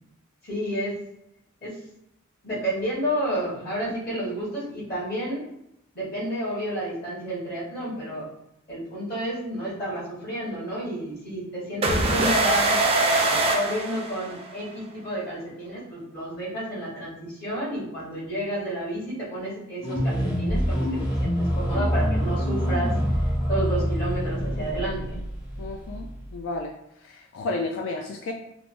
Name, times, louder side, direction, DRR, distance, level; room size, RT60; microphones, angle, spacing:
voice 1, 0.4-0.9 1.6-1.7 2.4-5.5 5.9-8.3 8.7-12.8 13.1-22.9 23.5-25.2, right 1 dB, 50° left, -7 dB, 1.2 m, -30 dB
sound 1, 11.8-14.6, right 2 dB, 30° right, 0.4 m, -23 dB
sound 2, 19.8-26.4, equal, 20° left, 0.6 m, -26 dB
voice 2, 25.6-26.1 26.3-26.7 27.1-28.3, left 2 dB, 65° left, 2 dB, 0.3 m, -31 dB
3.2 x 2.1 x 2.5 m, 0.79 s
head